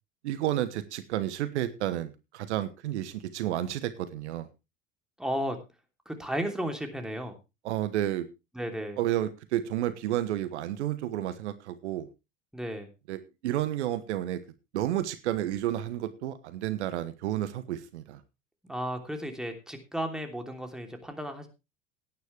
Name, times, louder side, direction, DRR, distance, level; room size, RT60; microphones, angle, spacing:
voice 1, 0.2-4.5 7.6-8.3 9.0-12.1 13.1-14.4 14.7-18.2, right 13 dB, 65° right, 13 dB, 1.2 m, -31 dB
voice 2, 5.2-5.6 6.0-7.4 8.5-9.0 12.5-12.9 18.6-21.5, equal, ahead, 4 dB, 3.1 m, -34 dB
18.0 x 9.5 x 3.3 m, 0.28 s
figure-of-eight pair, 75°, 37 cm